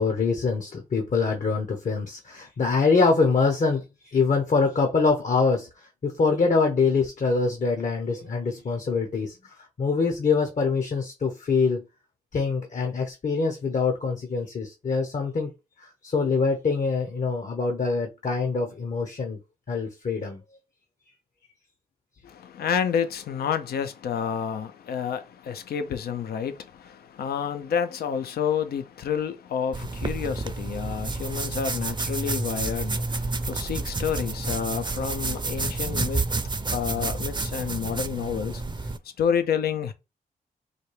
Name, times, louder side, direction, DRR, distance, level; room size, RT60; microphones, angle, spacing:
voice 1, 0.0-11.8 12.3-15.5 15.8-19.4 19.7-20.4, left 4 dB, 55° left, 0.9 m, -24 dB
voice 2, 22.2-36.4 36.7-38.9 39.2-39.9, left 7 dB, 80° left, 0.6 m, -29 dB
sound 1, 29.7-39.0, right 3 dB, 30° right, 0.6 m, -30 dB
4.1 x 2.3 x 3.2 m
supercardioid pair, 45°, 16 cm